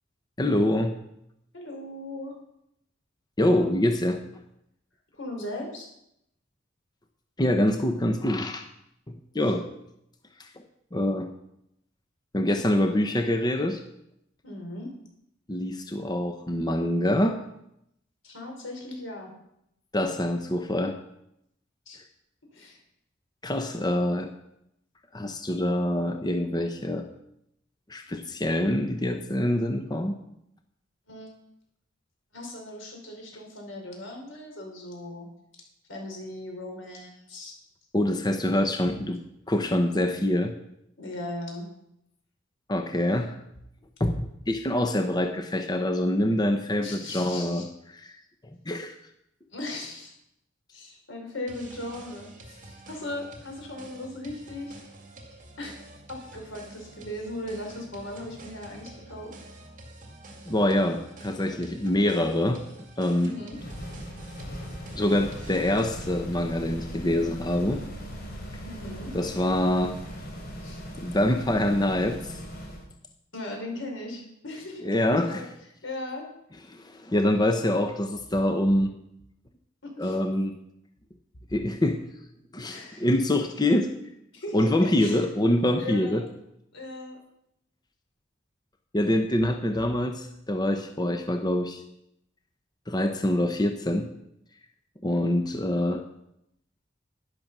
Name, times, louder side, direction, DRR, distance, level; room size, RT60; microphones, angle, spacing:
voice 1, 0.4-0.9 3.4-4.2 7.4-8.7 9.1-9.6 10.4-10.5 10.9-11.3 12.3-13.8 15.5-17.4 19.9-21.0 23.4-24.3 25.1-27.1 27.9-30.2 37.9-39.2 39.5-40.6 42.7-43.4 44.0-48.2 48.7-49.0 60.5-62.7 63.0-63.4 64.9-67.8 69.1-70.0 71.0-72.4 74.8-75.5 76.7-78.9 80.0-80.6 81.5-82.0 82.5-83.9 84.5-86.2 88.9-91.8 92.9-94.1 95.0-96.0, left 1 dB, 20° left, 6 dB, 0.9 m, -25 dB
voice 2, 1.5-2.3 5.1-5.9 14.4-14.9 18.2-19.3 21.9-22.0 22.5-22.8 31.1-31.4 32.3-35.3 35.9-37.5 41.0-41.7 46.8-47.6 49.5-50.1 50.7-54.8 55.6-55.7 56.1-59.3 63.2-63.6 68.6-69.1 70.6-70.8 73.3-75.5 75.8-76.3 79.8-80.2 82.7-83.1 84.3-85.2 85.8-86.2 86.7-87.2, left 1 dB, 80° left, 2 dB, 4.8 m, -38 dB
sound 1, 51.5-66.2, right 2 dB, 45° right, 2.4 m, -48 dB
sound 2, 63.5-72.9, equal, 55° left, 4.4 m, -39 dB
12.0 x 10.5 x 6.1 m, 0.79 s
head